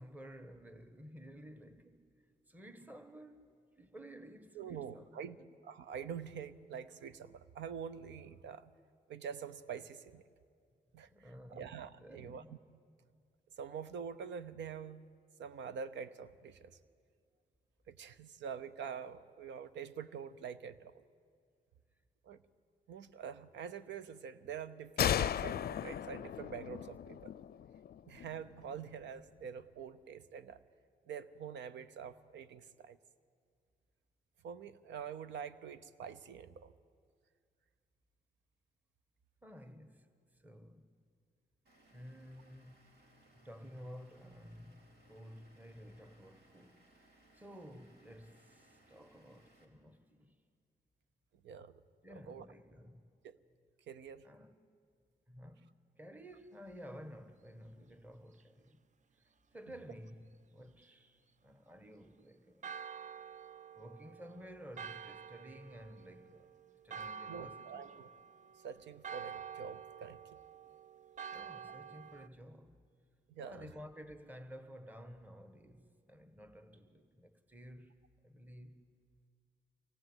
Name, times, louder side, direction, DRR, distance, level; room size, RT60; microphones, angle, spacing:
voice 1, 0.0-2.0 2.5-5.5 11.1-12.6 39.4-40.9 41.9-42.8 43.3-50.4 52.0-53.1 54.2-54.5 55.3-58.8 59.2-62.7 63.7-66.5 66.8-68.0 71.3-72.8 73.4-78.9, equal, 10° right, 1.3 m, -53 dB
voice 2, 4.5-5.4 5.6-8.7 9.1-10.2 10.9-12.6 13.6-15.1 15.4-16.8 17.9-21.0 22.2-22.4 22.9-27.3 28.1-30.6 31.1-33.0 34.4-36.7 51.4-51.7 52.3-52.5 53.2-53.4 53.9-54.3 67.3-68.1 68.6-70.4 73.3-73.7, right 7 dB, 85° right, 0.8 m, -46 dB
sound 1, 25.0-28.5, left 10 dB, 60° left, 0.5 m, -36 dB
Vehicle / Engine, 41.7-49.7, right 1 dB, 65° right, 3.3 m, -66 dB
Church bell, 62.6-72.3, right 7 dB, 45° right, 0.5 m, -49 dB
24.5 x 18.0 x 8.0 m
cardioid pair, 75°, 18 cm